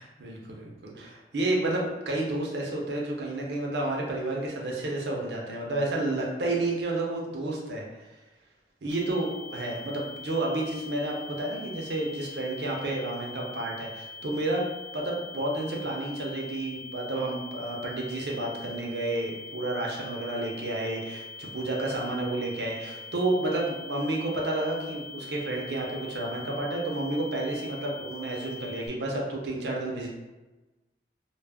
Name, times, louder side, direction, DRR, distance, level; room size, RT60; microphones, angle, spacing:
voice 1, 0.0-7.8 8.8-14.6 14.9-30.1, right 2 dB, 70° right, -1 dB, 0.6 m, -31 dB
sound 1, 8.9-28.9, left 3 dB, ahead, 0.4 m, -43 dB
2.3 x 2.0 x 3.4 m, 1.1 s
head